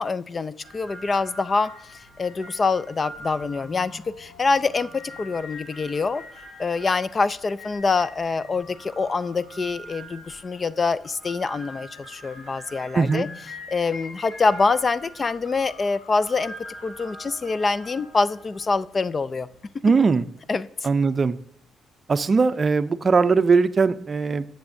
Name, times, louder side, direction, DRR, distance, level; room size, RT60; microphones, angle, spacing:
voice 1, 0.0-1.7 2.2-6.2 6.6-13.3 13.7-16.5 16.8-19.5 20.5-20.7, left 4 dB, 35° left, 16 dB, 0.4 m, -25 dB
sound 1, 0.6-19.7, left 1 dB, 60° left, 4.0 m, -43 dB
voice 2, 12.9-13.3 19.8-20.3 20.8-21.4 22.1-24.5, right 4 dB, 35° right, 13 dB, 0.5 m, -20 dB
12.0 x 7.6 x 2.6 m, 0.67 s
cardioid pair, 90°, 0 cm